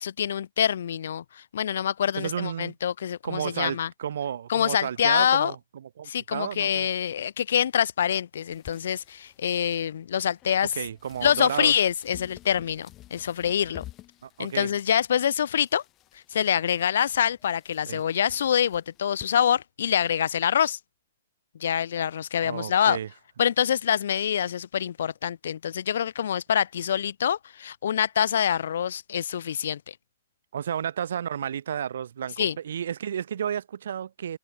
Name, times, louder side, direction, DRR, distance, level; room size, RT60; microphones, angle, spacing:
voice 1, 0.0-3.9 4.5-5.5 6.1-10.8 11.2-13.8 14.4-15.8 16.3-20.8 21.6-23.0 23.4-29.9 32.4-32.6, left 9 dB, 60° left, 0.7 m, -25 dB
voice 2, 2.1-2.7 3.2-5.6 6.0-6.9 10.8-11.7 14.2-14.7 17.9-18.0 22.4-23.1 30.5-34.4, right 9 dB, 60° right, 4.7 m, -32 dB
sound 1, 8.5-19.3, left 15 dB, 15° left, 5.8 m, -51 dB
hypercardioid pair, 170°, 0 cm